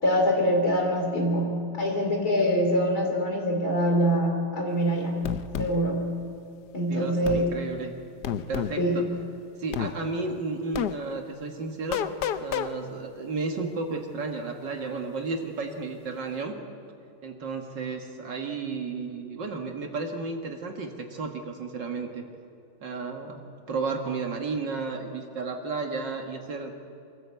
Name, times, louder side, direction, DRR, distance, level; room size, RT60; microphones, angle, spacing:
voice 1, 0.0-5.3 5.6-6.1 6.7-7.5 8.8-9.1, equal, 45° left, 1 dB, 3.8 m, -24 dB
sound 1, 5.2-5.7 7.2-7.4 8.2-8.8 9.7-9.9 10.7-10.9 11.9-12.7, left 10 dB, 65° left, 1.1 m, -29 dB
voice 2, 6.9-7.9 8.5-9.0 9.6-12.0 12.4-16.6 17.2-22.2 22.8-26.7, right 4 dB, 60° right, 3 dB, 2.2 m, -33 dB
25.0 x 14.0 x 8.2 m, 2.5 s
omnidirectional pair, 2.3 m